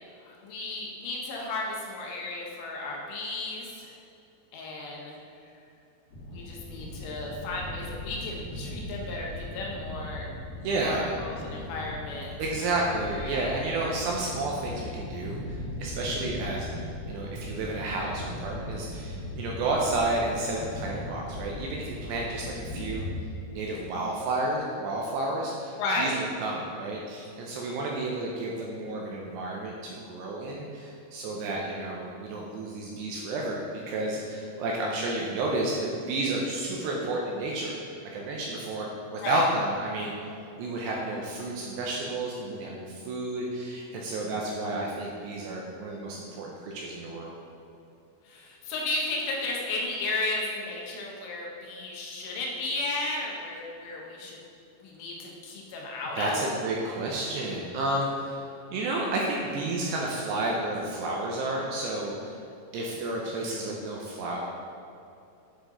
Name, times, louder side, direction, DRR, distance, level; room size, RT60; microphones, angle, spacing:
voice 1, 0.3-3.9 4.5-5.2 6.3-10.3 10.7-12.3 12.6-12.8 13.1-13.6 25.8-26.2 39.2-39.4 48.3-54.4 54.8-56.5, left 2 dB, 85° left, -2 dB, 3.5 m, -34 dB
sound 1, 6.1-23.2, left 1 dB, 60° left, 2.5 m, -38 dB
voice 2, 10.6-11.1 12.4-16.7 17.1-23.1 23.5-37.8 38.1-40.3 40.6-47.4 56.2-58.4 58.7-62.4 62.7-64.4, right 2 dB, 80° right, -2 dB, 2.5 m, -31 dB
8.4 x 5.0 x 3.7 m, 2.7 s
omnidirectional pair, 5.4 m